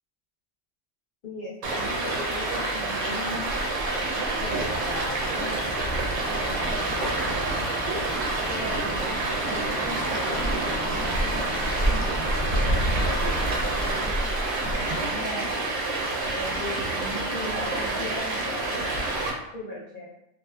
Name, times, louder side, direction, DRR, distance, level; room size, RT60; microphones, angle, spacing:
voice 1, 1.2-3.4 4.4-5.8 6.3-7.7 8.5-14.1 14.7-15.6 16.3-20.1, left 1 dB, 55° left, -5 dB, 0.6 m, -39 dB
Stream, 1.6-19.3, right 2 dB, 85° right, 1.0 m, -28 dB
sound 1, 3.5-14.8, right 1 dB, 5° right, 0.7 m, -34 dB
sound 2, 4.3-14.1, right 1 dB, 65° right, 0.5 m, -36 dB
2.6 x 2.3 x 2.2 m, 0.82 s
omnidirectional pair, 1.3 m